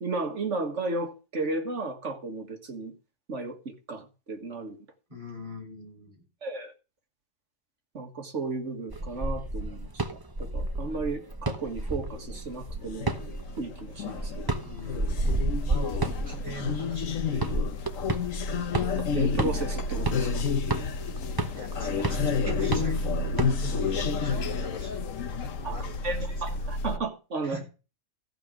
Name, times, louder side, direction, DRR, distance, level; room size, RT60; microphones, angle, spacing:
voice 1, 0.0-2.9 3.3-4.8 6.4-6.7 7.9-10.0 10.4-13.1 13.6-14.5 19.0-20.4 25.6-25.8 26.0-27.6, right 3 dB, 70° right, 2.1 m, -34 dB
voice 2, 5.1-6.2 14.6-15.2 15.7-17.4 21.5-25.1 25.4-26.7 27.4-27.7, equal, 40° right, 7.3 m, -42 dB
sound 1, 8.9-23.9, right 2 dB, 20° right, 0.9 m, -32 dB
sound 2, 12.0-27.0, left 4 dB, 90° left, 1.3 m, -30 dB
14.5 x 5.3 x 7.7 m
omnidirectional pair, 1.3 m